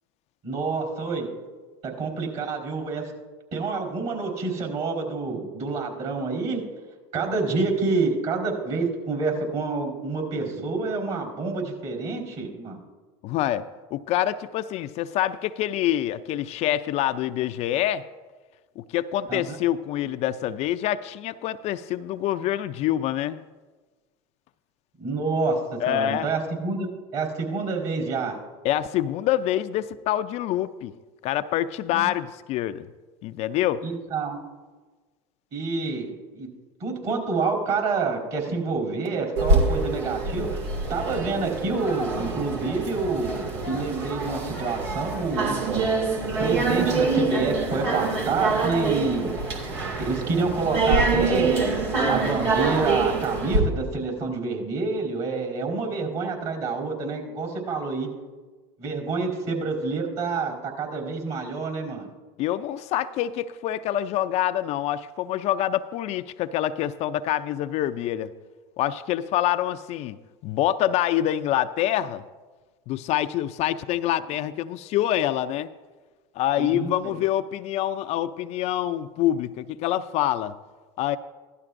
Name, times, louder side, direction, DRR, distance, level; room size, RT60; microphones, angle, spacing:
voice 1, 0.4-1.3 1.8-3.1 3.5-6.6 7.1-12.8 19.3-19.4 25.0-25.6 25.9-28.3 31.9-32.1 33.8-34.4 35.5-36.5 36.8-40.5 40.9-45.5 46.4-49.3 50.0-51.8 52.1-58.1 58.8-62.1 76.6-76.9, right 4 dB, 50° right, 2 dB, 4.3 m, -27 dB
voice 2, 13.2-18.0 18.8-23.4 25.8-26.3 28.6-30.9 31.2-32.9 33.2-33.8 62.4-68.3 68.8-70.2 70.4-72.2 72.9-75.7 76.4-80.6 81.0-81.2, left 12 dB, 50° left, 11 dB, 0.4 m, -26 dB
sound 1, 39.4-53.6, right 3 dB, 85° right, 2.3 m, -25 dB
16.0 x 12.0 x 2.6 m, 1.3 s
supercardioid pair, 110°, 14 cm